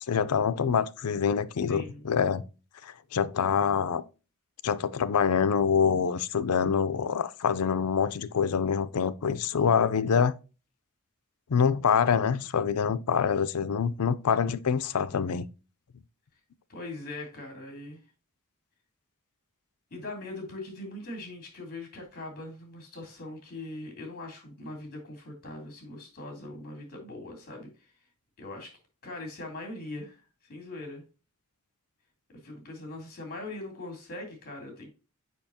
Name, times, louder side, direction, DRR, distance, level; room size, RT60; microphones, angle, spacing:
voice 1, 0.1-2.4 2.8-4.0 4.6-10.3 11.5-15.5, left 6 dB, 85° left, 0.5 m, -25 dB
voice 2, 1.7-2.1 16.7-18.0 19.9-27.9 28.4-31.0 32.4-34.9, left 2 dB, 45° left, 3.1 m, -41 dB
6.8 x 5.7 x 2.8 m
head